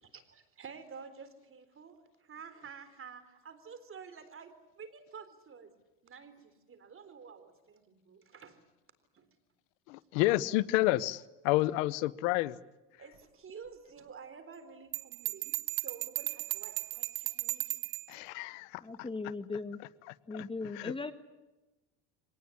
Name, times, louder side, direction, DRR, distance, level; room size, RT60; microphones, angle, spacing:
voice 1, 0.0-5.7 6.0-8.6 9.1-9.3 13.0-17.8, right 6 dB, 35° right, 4.0 m, -50 dB
voice 2, 9.9-12.6 18.1-19.1 20.1-21.1, left 17 dB, 85° left, 1.0 m, -31 dB
Bell, 14.9-18.1, right 17 dB, 60° right, 1.4 m, -36 dB
voice 3, 18.8-19.8 20.3-21.1, left 3 dB, 15° left, 1.4 m, -38 dB
24.5 x 19.0 x 9.9 m
supercardioid pair, 105°, 38 cm